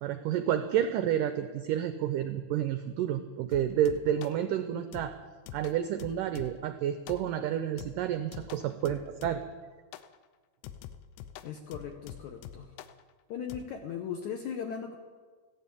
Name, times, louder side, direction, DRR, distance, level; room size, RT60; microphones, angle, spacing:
voice 1, 0.0-5.1 5.5-9.4, right 10 dB, 85° right, 9 dB, 1.9 m, -30 dB
sound 1, 3.5-4.4 4.9-6.7 7.1-7.5 7.8-9.6 9.9-10.2 10.6-13.0 13.5-13.6, left 10 dB, 90° left, 2.8 m, -46 dB
voice 2, 11.4-12.7 13.3-15.0, left 7 dB, 75° left, 4 dB, 1.8 m, -38 dB
14.5 x 11.5 x 8.5 m, 1.5 s
omnidirectional pair, 4.6 m